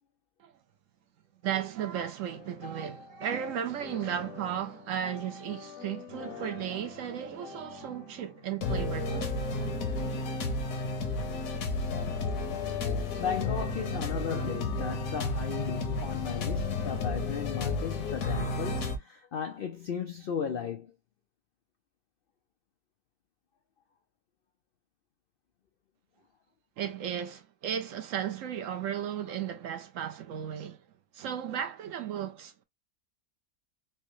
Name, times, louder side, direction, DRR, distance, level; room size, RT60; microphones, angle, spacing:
voice 1, 1.4-9.5 10.0-10.2 14.3-14.5 26.8-30.8 31.1-32.6, right 9 dB, 70° right, 0.9 m, -35 dB
sound 1, 2.3-3.4 3.7-8.0 8.6-19.0, left 3 dB, 70° left, 1.2 m, -33 dB
voice 2, 12.9-20.9, left 7 dB, 85° left, 0.5 m, -36 dB
4.6 x 2.1 x 3.0 m
omnidirectional pair, 1.6 m